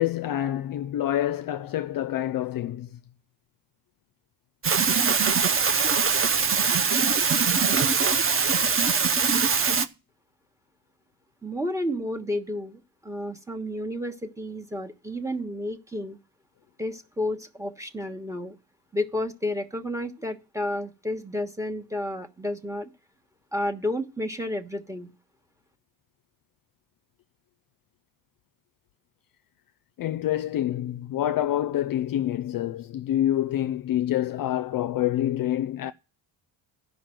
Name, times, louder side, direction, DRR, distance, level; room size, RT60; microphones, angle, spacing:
voice 1, 0.0-3.0 30.0-35.9, left 12 dB, 50° left, 0.5 m, -27 dB
sound 1, 4.6-9.9, right 5 dB, 30° right, 0.7 m, -22 dB
voice 2, 11.4-16.2 16.8-18.5 18.9-22.9 23.5-25.1, left 1 dB, 5° right, 1.2 m, -31 dB
11.5 x 5.4 x 7.6 m
cardioid pair, 90°, 47 cm